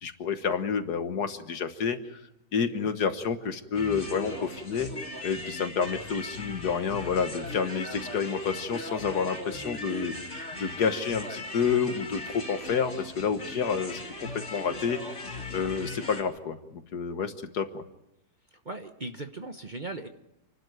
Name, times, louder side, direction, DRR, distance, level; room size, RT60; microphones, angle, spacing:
voice 1, 0.0-2.2 2.5-4.9 5.2-10.1 10.6-15.0 15.5-17.8, left 6 dB, 65° left, 9 dB, 1.8 m, -29 dB
sound 1, 3.7-16.2, left 2 dB, 40° left, 3.5 m, -38 dB
voice 2, 18.5-20.1, right 2 dB, 35° right, 6 dB, 1.0 m, -38 dB
28.5 x 12.0 x 9.3 m, 0.88 s
omnidirectional pair, 1.8 m